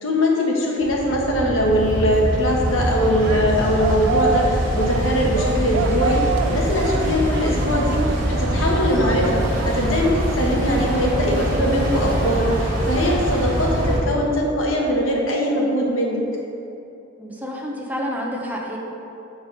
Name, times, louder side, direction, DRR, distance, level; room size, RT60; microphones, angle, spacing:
voice 1, 0.0-16.2, equal, 90° left, -2 dB, 1.2 m, -21 dB
sound 1, 0.8-14.0, equal, 40° right, 1.7 m, -24 dB
sound 2, 2.7-12.9, right 5 dB, 80° right, 0.3 m, -30 dB
voice 2, 17.2-18.8, equal, 10° right, -2 dB, 0.7 m, -29 dB
7.8 x 4.0 x 5.2 m, 2.8 s
head